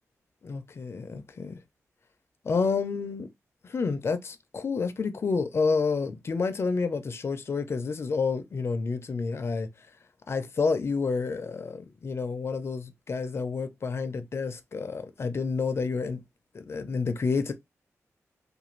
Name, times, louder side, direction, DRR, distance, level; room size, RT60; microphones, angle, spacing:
voice 1, 0.4-1.6 2.4-3.3 3.6-9.7 10.3-16.2 16.5-17.5, left 4 dB, 50° left, 0.5 m, -29 dB
2.4 x 2.3 x 3.1 m
wide cardioid pair, 95°, 6 cm